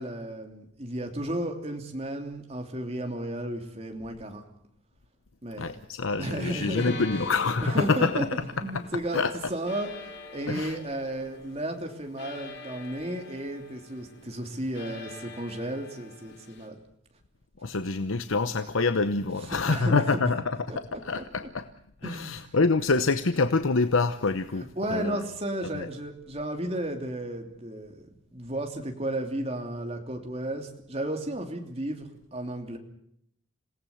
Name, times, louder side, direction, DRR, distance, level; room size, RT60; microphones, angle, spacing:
voice 1, 0.0-4.4 5.4-5.8 6.2-6.9 7.6-16.8 19.7-20.3 20.7-21.5 22.0-22.6 24.8-27.9 28.3-32.8, right 1 dB, 30° right, 3 dB, 3.0 m, -34 dB
voice 2, 5.6-8.3 9.1-9.3 10.5-10.8 17.6-20.6 21.0-21.7 22.0-24.7 24.9-25.2 25.7-25.9, left 3 dB, 85° left, 10 dB, 0.9 m, -26 dB
sound 1, 6.2-16.7, left 3 dB, 55° left, 3.8 m, -45 dB
27.5 x 18.0 x 7.2 m, 0.72 s
head